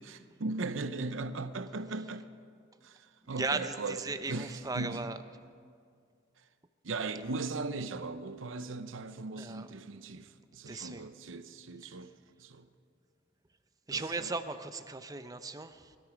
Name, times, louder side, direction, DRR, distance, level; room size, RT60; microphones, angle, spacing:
voice 1, 0.1-2.3 2.8-5.1 6.8-12.1 12.4-12.6 13.9-14.3, right 3 dB, 90° right, 0.8 m, -38 dB
voice 2, 3.3-5.2 9.4-9.7 10.7-11.1 11.8-12.0 13.9-16.0, right 3 dB, 20° right, 0.6 m, -37 dB
21.5 x 13.0 x 5.1 m
head